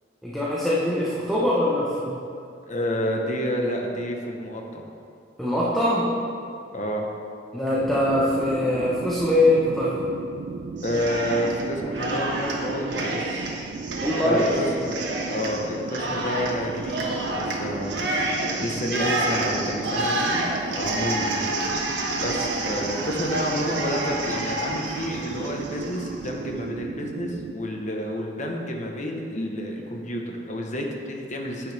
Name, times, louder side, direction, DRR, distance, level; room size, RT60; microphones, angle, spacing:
voice 1, 0.2-2.2 5.4-6.1 7.5-10.0 14.0-14.6, left 1 dB, ahead, -8 dB, 1.2 m, -22 dB
voice 2, 2.7-4.8 6.7-7.1 10.8-13.4 14.1-15.0 15.3-21.9 22.2-31.7, equal, 45° left, 1 dB, 1.2 m, -29 dB
sound 1, 7.8-27.5, right 4 dB, 50° right, 0.3 m, -35 dB
Cheering, 10.8-11.6 11.9-26.3, right 2 dB, 90° right, 1.4 m, -29 dB
10.5 x 9.2 x 3.5 m, 2.4 s
head